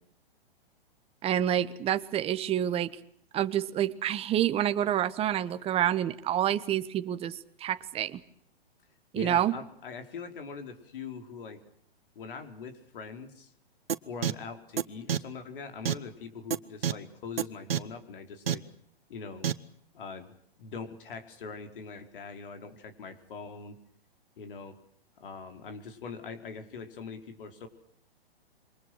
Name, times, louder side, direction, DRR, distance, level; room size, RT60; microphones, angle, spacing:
voice 1, 1.2-2.9 3.3-8.2 9.1-9.6, right 11 dB, 20° right, 12 dB, 1.3 m, -28 dB
voice 2, 9.1-11.6 12.1-13.5 14.0-18.6 19.1-19.5 19.9-20.3 20.6-23.8 24.4-24.8 25.2-27.7, left 5 dB, 60° left, 7 dB, 4.8 m, -42 dB
sound 1, 13.9-14.0 14.2-14.3 14.8-14.9 15.1-15.2 15.9-16.0 16.5-16.6 16.8-16.9 17.4-17.5 17.7-17.8 18.5-18.6 19.4-19.5, right 9 dB, 70° right, 1.6 m, -26 dB
28.0 x 24.5 x 6.3 m, 0.66 s
figure-of-eight pair, 120°, 31 cm